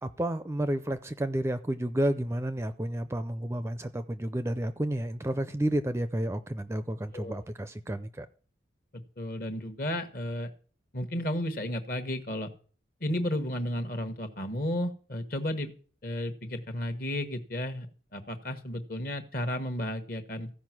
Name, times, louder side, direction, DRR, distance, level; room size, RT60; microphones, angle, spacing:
voice 1, 0.0-8.3, right 1 dB, 15° right, 0.4 m, -31 dB
voice 2, 9.2-10.5 10.9-12.5 13.0-15.7 16.0-17.9 18.1-20.5, left 1 dB, 50° left, 1.2 m, -33 dB
14.5 x 5.1 x 6.1 m
head